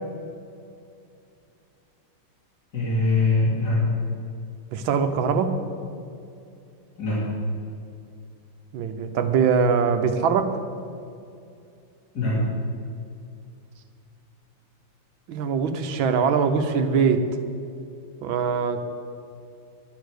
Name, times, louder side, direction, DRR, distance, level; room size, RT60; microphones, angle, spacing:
voice 1, 2.7-3.8 7.0-7.2 12.1-12.4, left 3 dB, 55° left, -6 dB, 3.2 m, -22 dB
voice 2, 4.7-5.6 8.7-10.6 15.3-17.3 18.2-18.8, right 6 dB, 85° right, 7 dB, 1.7 m, -22 dB
11.0 x 10.5 x 6.5 m, 2.5 s
omnidirectional pair, 2.1 m